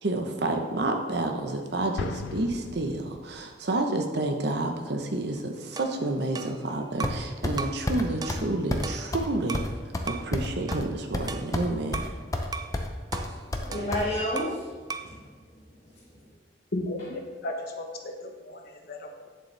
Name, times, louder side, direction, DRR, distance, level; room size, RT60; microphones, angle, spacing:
voice 1, 0.0-9.6 10.1-12.0, right 2 dB, 65° right, 0.9 m, -29 dB
Explosion, 2.0-3.6, left 5 dB, 90° left, 0.4 m, -38 dB
sound 1, 5.8-7.3 7.6-7.9 8.2-9.7 10.1-10.3 10.7-12.2 12.5-12.8 13.1-14.6 14.9-15.2, right 5 dB, 20° right, 0.3 m, -38 dB
sound 2, 7.0-7.6 7.9-8.0 8.3-8.4 8.7-8.9 9.1-9.3 9.5-10.9 11.1-11.7 11.9-12.5 12.7-14.0, left 1 dB, 20° left, 0.6 m, -29 dB
voice 2, 13.2-16.3, left 1 dB, 35° left, 1.6 m, -33 dB
voice 3, 16.7-19.3, left 1 dB, 60° left, 1.0 m, -35 dB
8.5 x 7.3 x 3.3 m
head